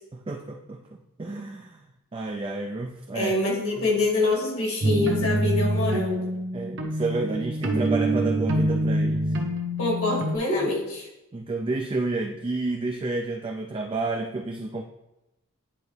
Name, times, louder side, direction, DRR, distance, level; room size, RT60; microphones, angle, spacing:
voice 1, 0.1-1.8 2.1-3.3 3.8-3.9 6.5-9.4 11.3-14.8, right 2 dB, 25° right, 2 dB, 0.3 m, -30 dB
voice 2, 3.1-6.3 9.8-11.1, left 2 dB, 70° left, -3 dB, 2.2 m, -25 dB
sound 1, 4.8-10.4, right 1 dB, 55° right, 0.9 m, -25 dB
9.9 x 4.0 x 3.2 m, 0.93 s
head